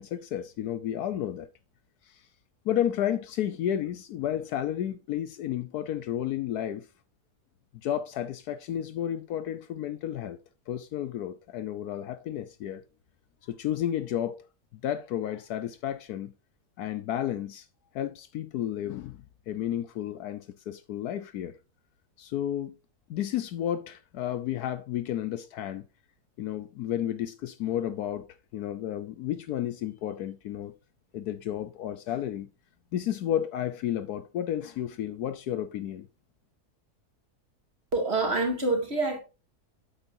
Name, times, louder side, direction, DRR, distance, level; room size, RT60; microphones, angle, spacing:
voice 1, 0.0-1.5 2.1-2.2 2.6-6.9 7.7-10.4 10.7-12.8 13.4-14.4 14.7-16.3 16.8-17.7 17.9-19.2 19.5-21.6 22.2-22.7 23.1-25.8 26.4-28.3 28.5-30.7 31.1-32.5 32.9-36.1, left 11 dB, 75° left, 1.2 m, -32 dB
voice 2, 37.9-39.2, right 2 dB, 40° right, 2.6 m, -26 dB
9.2 x 8.2 x 2.6 m
omnidirectional pair, 1.7 m